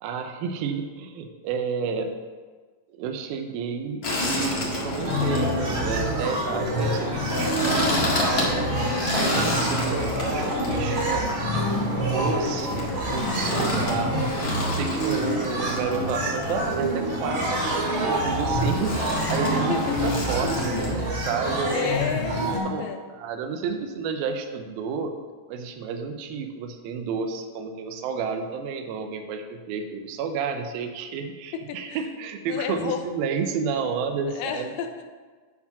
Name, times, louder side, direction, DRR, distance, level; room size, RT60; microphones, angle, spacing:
voice 1, 0.0-2.1 2.9-11.0 12.1-14.3 14.7-19.0 19.3-19.7 20.0-22.0 22.4-22.9 23.2-25.1 25.5-34.7, right 5 dB, 85° right, 6 dB, 2.5 m, -31 dB
sound 1, 4.0-20.9, left 2 dB, 45° left, 1.3 m, -29 dB
sound 2, 5.0-22.6, right 1 dB, 55° right, 2.9 m, -27 dB
voice 2, 9.1-9.5 19.5-20.0 21.7-22.5 22.8-23.0 31.5-32.0 32.5-33.1 34.3-35.0, left 7 dB, 75° left, 6 dB, 2.3 m, -31 dB
9.4 x 4.7 x 5.9 m, 1.4 s
omnidirectional pair, 4.2 m